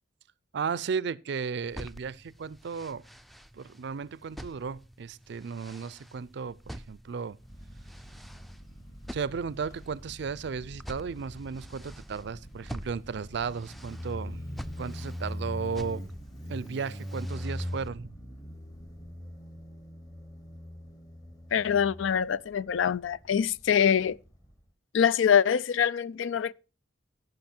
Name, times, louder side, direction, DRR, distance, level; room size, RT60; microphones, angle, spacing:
voice 1, 0.5-3.0 3.5-7.4 9.1-14.4 14.8-16.0 16.5-18.1, right 5 dB, 65° right, 0.4 m, -35 dB
sound 1, 1.6-17.9, equal, ahead, 0.4 m, -48 dB
Motorcycle, 7.4-24.6, equal, 20° left, 1.1 m, -42 dB
voice 2, 21.5-24.2 24.9-26.5, left 8 dB, 85° left, 0.4 m, -24 dB
16.0 x 5.4 x 4.4 m
head